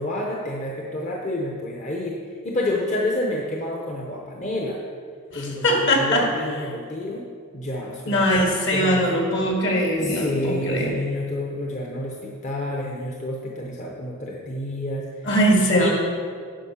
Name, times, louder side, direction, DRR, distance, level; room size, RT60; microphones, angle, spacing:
voice 1, 0.0-2.2 2.4-4.8 5.3-7.3 7.5-9.2 10.0-15.3 15.7-15.9, left 1 dB, 35° left, -2 dB, 0.8 m, -29 dB
voice 2, 5.3-6.2 8.1-10.9 15.3-15.9, equal, 60° left, -1 dB, 2.0 m, -21 dB
10.0 x 5.5 x 5.7 m, 2.1 s
head